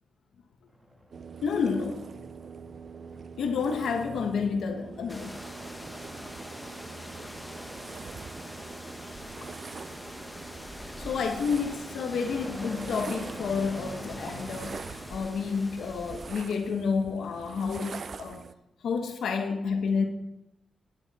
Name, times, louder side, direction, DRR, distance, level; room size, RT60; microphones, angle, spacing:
sound 1, 0.7-15.3, right 1 dB, 30° right, 2.1 m, -48 dB
sound 2, 1.1-18.5, right 6 dB, 55° right, 0.5 m, -44 dB
voice 1, 1.4-2.0 3.4-5.4 9.4-9.5 11.0-18.4 18.8-20.0, left 5 dB, 90° left, 1.2 m, -30 dB
sound 3, 5.1-16.8, left 1 dB, 5° left, 1.1 m, -43 dB
10.5 x 9.7 x 4.2 m
cardioid pair, 100°, 0 cm